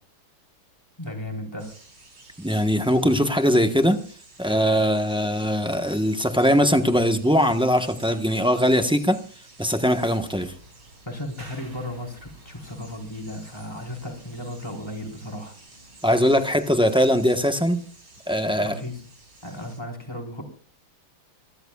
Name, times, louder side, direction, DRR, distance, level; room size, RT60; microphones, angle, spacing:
voice 1, 1.0-1.7 11.1-15.5 18.6-19.0 19.4-20.4, left 1 dB, 10° left, 1 dB, 4.6 m, -35 dB
sound 1, 1.6-19.8, right 2 dB, 55° right, 5.3 m, -50 dB
voice 2, 2.4-4.0 4.4-9.2 9.6-10.5 16.0-17.8 18.3-18.7, equal, 5° right, 6 dB, 0.7 m, -21 dB
27.0 x 14.0 x 2.4 m, 0.41 s
omnidirectional pair, 2.3 m